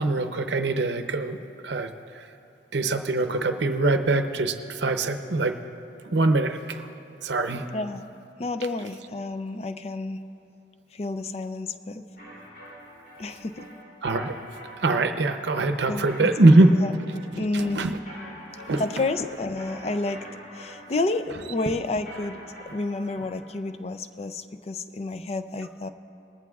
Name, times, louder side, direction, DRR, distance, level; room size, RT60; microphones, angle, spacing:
voice 1, 0.0-1.4 1.6-2.2 2.7-5.6 6.1-6.9 7.2-7.6 14.0-14.3 14.8-16.7 17.3-18.0 18.7-18.8, right 2 dB, 70° right, 7 dB, 0.6 m, -23 dB
voice 2, 8.4-10.2 10.9-12.0 13.2-13.7 15.9-16.9 17.4-17.9 18.8-20.2 20.5-22.4 22.7-25.9, left 2 dB, 35° left, 10 dB, 0.4 m, -30 dB
sound 1, 12.2-23.5, equal, 50° left, 3.0 m, -45 dB
20.0 x 14.5 x 2.4 m, 2.8 s
head